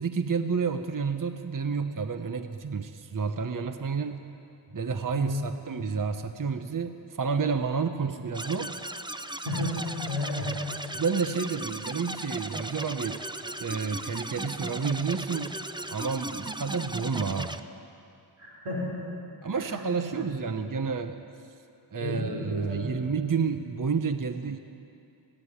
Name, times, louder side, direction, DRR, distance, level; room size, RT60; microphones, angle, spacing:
voice 1, 0.0-4.2 4.7-8.7 10.9-13.2 13.6-15.6 15.9-17.6 19.4-21.2 21.9-24.6, right 5 dB, 40° right, 8 dB, 0.9 m, -30 dB
voice 2, 5.1-5.5 9.4-9.8 10.1-10.6 18.4-18.9 19.5-19.8 20.1-20.8 22.0-22.9, left 1 dB, 80° right, -4 dB, 5.4 m, -33 dB
sound 1, 8.3-17.6, right 1 dB, 10° right, 0.6 m, -37 dB
21.5 x 16.0 x 9.8 m, 2.6 s
wide cardioid pair, 115°, 48 cm